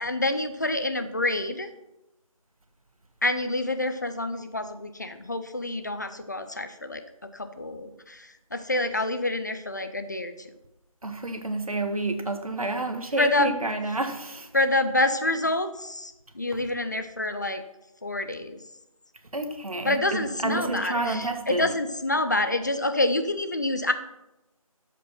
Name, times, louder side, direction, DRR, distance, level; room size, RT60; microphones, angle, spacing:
voice 1, 0.0-1.7 3.2-7.0 7.3-10.5 13.2-13.5 14.5-17.6 18.0-18.6 19.8-23.9, left 2 dB, 30° left, 9 dB, 0.5 m, -27 dB
voice 2, 11.0-14.5 19.3-21.7, right 2 dB, 75° right, 6 dB, 1.6 m, -29 dB
13.0 x 5.3 x 5.8 m, 0.93 s
figure-of-eight pair, 165°, 18 cm